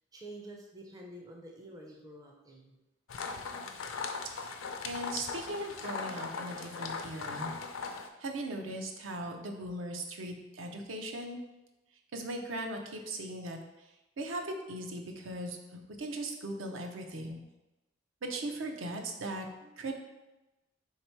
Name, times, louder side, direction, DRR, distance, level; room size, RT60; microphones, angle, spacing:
voice 1, 0.1-2.8 3.8-4.0 4.9-5.0, right 1 dB, 20° right, -1 dB, 0.5 m, -49 dB
sound 1, 3.1-8.1, left 4 dB, 90° left, 0.5 m, -39 dB
voice 2, 4.8-7.5 8.2-11.4 12.1-13.9 14.2-17.4 18.2-19.9, right 1 dB, 70° right, 3 dB, 0.6 m, -39 dB
3.7 x 2.9 x 4.4 m, 1.0 s
head